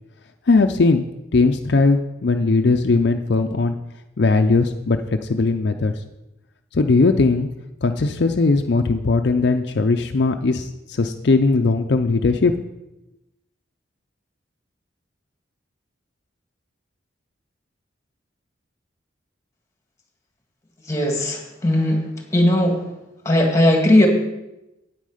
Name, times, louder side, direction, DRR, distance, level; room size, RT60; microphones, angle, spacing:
voice 1, 0.5-3.8 4.2-6.0 6.7-7.5 7.8-12.5, left 3 dB, 60° left, 6 dB, 0.5 m, -19 dB
voice 2, 20.9-22.0 22.3-22.8 23.2-24.1, left 1 dB, 15° left, 2 dB, 1.7 m, -17 dB
9.2 x 9.2 x 5.0 m, 0.93 s
head